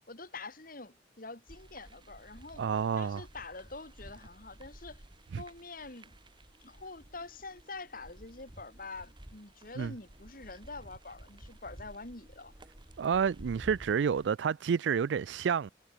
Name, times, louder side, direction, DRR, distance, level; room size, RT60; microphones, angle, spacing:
voice 1, 0.1-2.6 3.0-5.0 5.4-6.2 6.6-12.5, left 3 dB, 50° left, 3.3 m, -46 dB
sound 1, 1.5-14.3, right 1 dB, 25° right, 1.7 m, -53 dB
voice 2, 2.6-3.2 5.3-5.4 9.8-9.9 13.0-15.7, right 6 dB, 85° right, 0.4 m, -29 dB
head